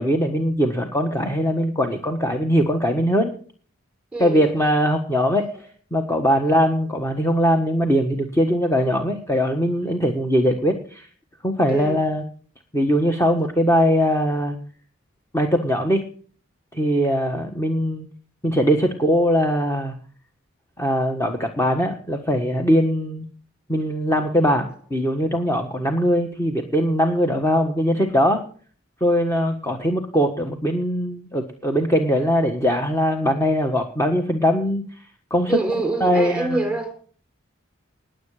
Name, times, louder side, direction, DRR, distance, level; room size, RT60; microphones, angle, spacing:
voice 1, 0.0-3.3 4.2-5.5 5.9-11.1 11.4-12.2 12.7-14.6 15.3-16.0 16.7-18.1 18.4-19.9 20.8-23.3 23.7-28.4 29.0-34.8 35.3-35.6 36.0-36.6, equal, 15° left, 4 dB, 1.4 m, -21 dB
voice 2, 4.1-4.7 11.7-12.0 35.5-36.9, right 2 dB, 5° right, 6 dB, 3.8 m, -26 dB
20.0 x 7.8 x 4.9 m, 0.43 s
head